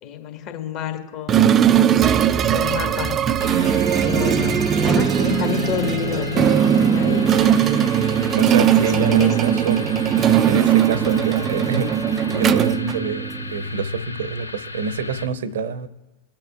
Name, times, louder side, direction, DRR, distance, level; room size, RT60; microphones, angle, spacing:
voice 1, 0.0-1.9 2.3-3.2 4.0-7.3 7.8-7.9 8.8-9.3, left 9 dB, 45° left, 5 dB, 1.5 m, -29 dB
sound 1, 1.3-13.6, right 9 dB, 30° right, 0.4 m, -19 dB
sound 2, 3.4-15.3, left 3 dB, 80° left, 0.5 m, -33 dB
voice 2, 8.4-9.9 10.4-15.9, right 5 dB, 60° right, 16 dB, 0.8 m, -27 dB
22.0 x 8.6 x 2.4 m, 1.2 s
figure-of-eight pair, 85°, 0 cm